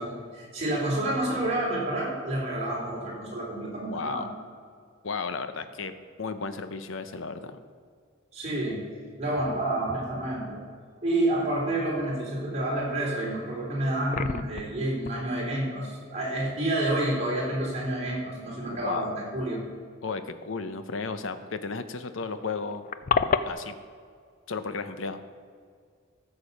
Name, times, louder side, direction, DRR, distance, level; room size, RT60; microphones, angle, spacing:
voice 1, 0.0-4.3 8.3-8.8 9.2-10.6 11.0-19.6, right 1 dB, 35° right, -4 dB, 3.1 m, -29 dB
voice 2, 3.9-4.3 5.0-7.6 18.8-19.1 20.0-22.8 23.4-23.8 24.5-25.2, left 4 dB, 75° left, 10 dB, 0.7 m, -34 dB
sound 1, 13.4-13.5 13.8-14.8 15.1-15.2 17.6-17.8 18.6-18.7 19.0-19.1 21.5-21.6 21.8-21.9 22.2-23.5, left 6 dB, 40° left, 0.4 m, -28 dB
14.5 x 6.9 x 5.3 m, 2.1 s
head